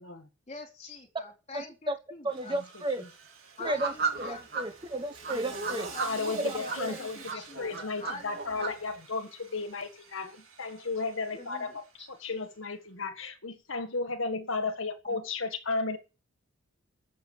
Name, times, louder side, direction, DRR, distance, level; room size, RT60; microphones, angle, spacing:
voice 1, 0.5-2.6 3.6-4.5 5.9-8.8 11.3-12.1 15.0-15.2, left 2 dB, 30° left, 4.1 m, -46 dB
voice 2, 1.5-2.0 2.2-3.0 3.6-3.9 4.2-5.9 6.2-7.0, right 1 dB, 25° right, 1.2 m, -33 dB
Sawing, 2.3-12.5, right 6 dB, 75° right, 4.1 m, -50 dB
sound 1, 3.6-4.6 5.2-6.8 7.3-8.7, right 4 dB, 50° right, 3.2 m, -34 dB
voice 3, 5.3-11.8 12.1-16.0, left 3 dB, 70° left, 1.7 m, -34 dB
12.5 x 7.6 x 8.6 m
head